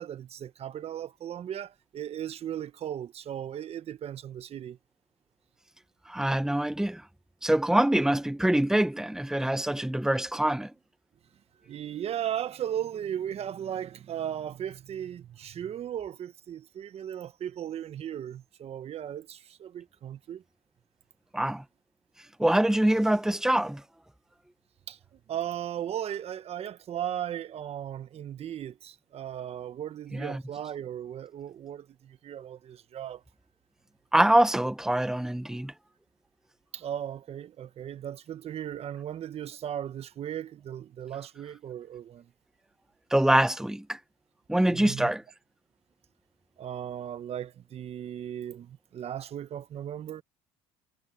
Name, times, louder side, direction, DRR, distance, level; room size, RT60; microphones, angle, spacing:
voice 1, 0.0-4.8 11.7-20.4 24.9-25.0 25.3-33.2 36.7-42.3 44.7-45.1 46.6-50.2, right 10 dB, 50° right, 1.3 m, -36 dB
voice 2, 6.1-7.0 7.4-10.7 21.3-21.6 22.4-23.8 30.1-30.4 34.1-35.7 43.1-44.0 44.5-45.2, right 1 dB, 5° right, 1.3 m, -24 dB
hypercardioid pair, 70°, 13 cm